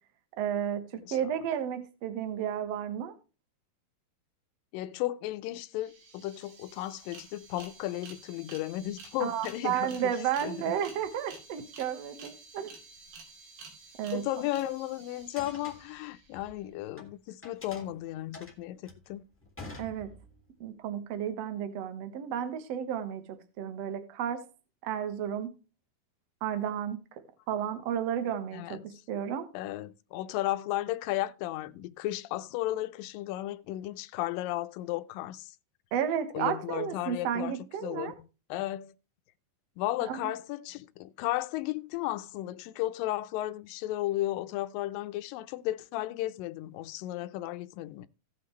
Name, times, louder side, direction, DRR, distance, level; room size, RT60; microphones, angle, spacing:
voice 1, 0.4-3.1 9.2-12.8 14.0-14.2 19.8-20.1 20.6-24.4 24.8-25.5 26.4-27.0 27.5-29.5 35.9-38.1 40.0-40.2, right 9 dB, 60° right, 1.9 m, -32 dB
voice 2, 4.7-10.1 10.4-10.7 14.1-19.2 28.5-28.8 29.5-35.5 36.3-37.5 37.8-38.1 38.5-38.9 39.8-48.1, left 15 dB, 80° left, 2.2 m, -34 dB
sound 1, 5.4-5.5 5.7-16.5, right 4 dB, 90° right, 4.7 m, -51 dB
sound 2, 15.2-17.1 17.4-20.5, left 2 dB, 5° left, 1.1 m, -47 dB
17.5 x 6.0 x 3.1 m
omnidirectional pair, 4.4 m